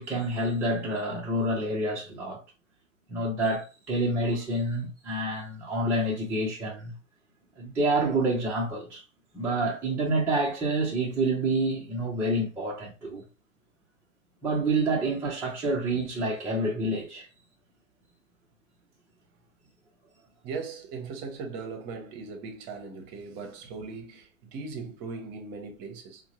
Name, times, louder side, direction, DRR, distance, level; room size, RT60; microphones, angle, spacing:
voice 1, 0.0-2.4 3.1-6.9 7.6-9.0 9.3-13.2 14.4-17.3, right 2 dB, 5° right, 0.4 m, -28 dB
voice 2, 20.4-26.2, right 4 dB, 30° right, 0.7 m, -39 dB
4.4 x 2.0 x 2.9 m
figure-of-eight pair, 95°, 38 cm